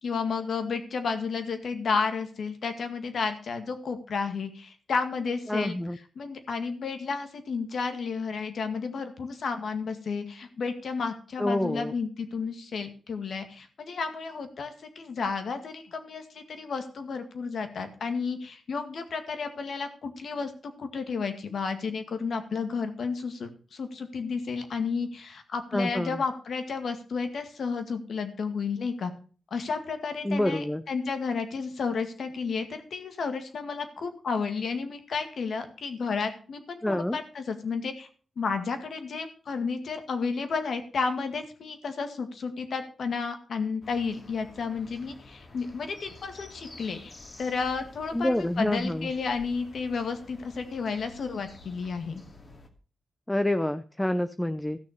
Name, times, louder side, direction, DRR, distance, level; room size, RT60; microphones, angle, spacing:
voice 1, 0.0-29.1 29.5-38.1 38.4-47.1 47.4-52.2, left 5 dB, 70° left, 7 dB, 2.0 m, -32 dB
voice 2, 5.5-6.0 11.4-11.9 25.7-26.2 30.2-30.8 36.8-37.2 48.1-49.1 53.3-54.8, left 1 dB, 10° left, 11 dB, 0.6 m, -27 dB
sound 1, 43.8-52.7, left 2 dB, 40° left, 2.4 m, -50 dB
14.0 x 6.4 x 6.7 m, 0.40 s
wide cardioid pair, 100°, 0 cm